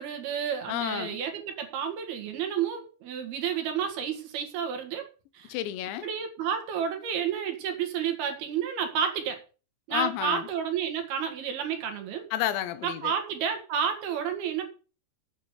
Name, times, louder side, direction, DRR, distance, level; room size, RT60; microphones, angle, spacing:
voice 1, 0.0-5.1 5.3-5.5 6.0-9.4 9.9-12.3 12.8-14.7, right 8 dB, 65° right, 3.4 m, -31 dB
voice 2, 0.7-1.2 5.5-6.1 9.9-10.5 12.3-13.1, left 12 dB, 80° left, 3.2 m, -31 dB
8.4 x 8.1 x 6.8 m
omnidirectional pair, 5.3 m